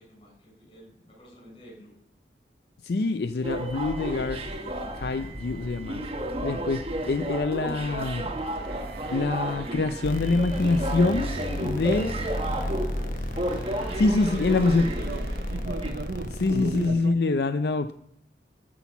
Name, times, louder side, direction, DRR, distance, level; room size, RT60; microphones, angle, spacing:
voice 1, 0.0-1.9 11.5-15.5, left 1 dB, 35° left, -2 dB, 6.1 m, -50 dB
voice 2, 2.8-4.4 4.9-6.0 6.4-8.3 9.1-11.3 11.6-12.1 14.0-14.9 16.3-17.9, left 3 dB, 65° left, 10 dB, 0.5 m, -25 dB
sound 1, 3.4-15.9, right 1 dB, 35° right, 1.3 m, -32 dB
sound 2, 8.2-17.1, right 3 dB, 60° right, 0.5 m, -40 dB
sound 3, 10.0-16.9, equal, 50° left, 1.0 m, -33 dB
14.0 x 6.1 x 7.1 m, 0.72 s
head